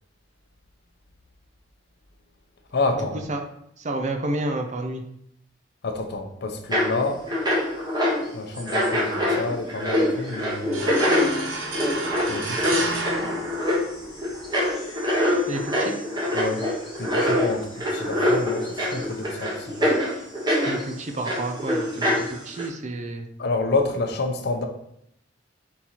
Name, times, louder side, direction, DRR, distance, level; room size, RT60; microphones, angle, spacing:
voice 1, 2.7-3.2 5.8-7.2 8.3-10.9 12.3-12.8 16.3-16.7 17.0-19.9 23.4-24.7, left 3 dB, 60° left, 5 dB, 0.6 m, -28 dB
voice 2, 3.8-5.0 15.5-15.9 20.7-23.3, right 2 dB, 40° right, 4 dB, 0.5 m, -30 dB
sound 1, 6.7-6.9 7.3-8.2 8.5-20.8 21.2-22.6, left 1 dB, 20° right, 1.1 m, -24 dB
sound 2, 10.7-14.3, right 2 dB, 85° right, 0.8 m, -30 dB
4.1 x 3.8 x 2.9 m, 0.73 s
head